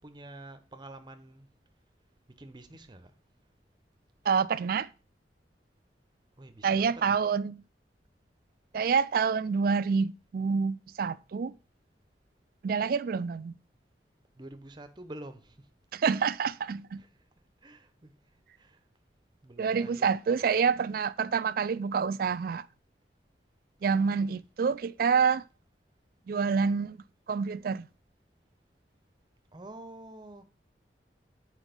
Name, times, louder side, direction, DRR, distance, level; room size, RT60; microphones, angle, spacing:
voice 1, 0.0-1.5 2.4-3.1 6.4-7.2 14.4-15.7 16.9-17.1 17.6-18.1 18.6-18.8 19.4-20.4 29.5-30.4, right 1 dB, 25° right, 0.8 m, -48 dB
voice 2, 4.2-4.9 6.6-7.6 8.7-11.5 12.6-13.5 15.9-17.0 19.6-22.6 23.8-25.4 26.3-27.0 27.3-27.9, right 6 dB, 55° right, 0.3 m, -27 dB
8.1 x 4.7 x 5.1 m
head